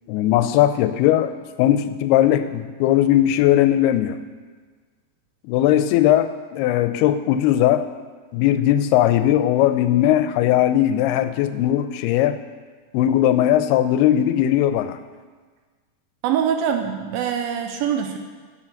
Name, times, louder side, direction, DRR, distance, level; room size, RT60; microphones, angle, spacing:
voice 1, 0.1-4.2 5.5-7.9 8.3-12.4 12.9-15.0, left 12 dB, 85° left, 11 dB, 2.5 m, -18 dB
voice 2, 16.2-18.2, right 8 dB, 80° right, 5 dB, 2.4 m, -23 dB
11.0 x 7.3 x 7.1 m, 1.5 s
omnidirectional pair, 4.7 m